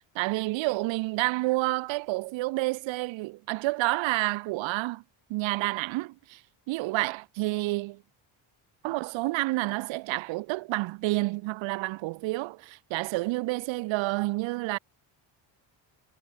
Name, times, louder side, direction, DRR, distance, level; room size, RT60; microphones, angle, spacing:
voice 1, 0.2-5.0 5.3-6.4 6.7-8.0 8.8-14.8, right 21 dB, 90° right, 3.6 m, -29 dB
cardioid pair, 85°, 45 cm